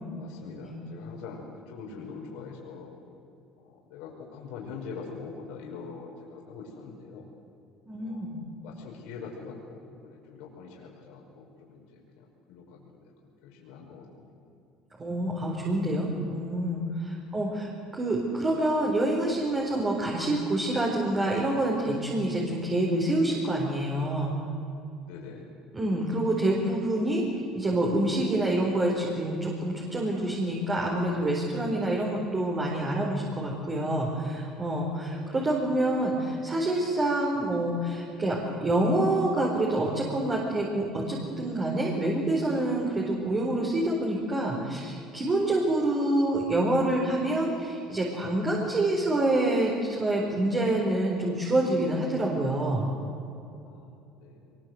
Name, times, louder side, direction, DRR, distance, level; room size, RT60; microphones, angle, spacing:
voice 1, 0.2-2.9 3.6-7.2 8.0-8.2 8.6-12.9 13.4-14.5 17.2-17.3 25.0-25.5 26.1-26.3 35.0-35.3 53.7-54.6, left 5 dB, 80° left, -2 dB, 5.4 m, -44 dB
voice 2, 7.9-8.3 15.0-24.3 25.7-27.2 27.5-52.9, right 1 dB, 25° right, -2 dB, 4.6 m, -27 dB
23.5 x 22.5 x 8.0 m, 2.7 s
supercardioid pair, 110°, 0 cm